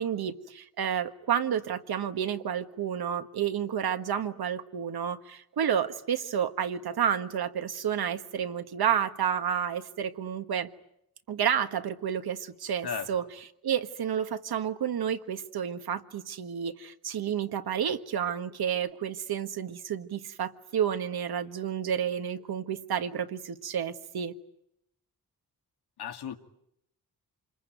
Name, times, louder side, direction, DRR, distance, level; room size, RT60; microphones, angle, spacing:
voice 1, 0.0-10.7 11.3-13.2 13.6-24.3, right 8 dB, 75° right, 9 dB, 1.6 m, -30 dB
voice 2, 26.0-26.4, left 7 dB, 85° left, 5 dB, 2.3 m, -34 dB
28.0 x 22.0 x 9.2 m, 0.77 s
wide cardioid pair, 180°, 38 cm